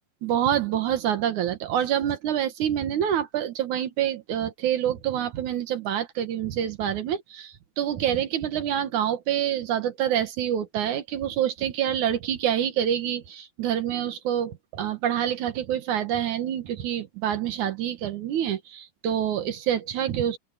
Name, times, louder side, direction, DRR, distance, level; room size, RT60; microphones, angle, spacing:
voice 1, 0.2-20.4, right 10 dB, 60° right, 2.2 m, -27 dB
open air
omnidirectional pair, 4.8 m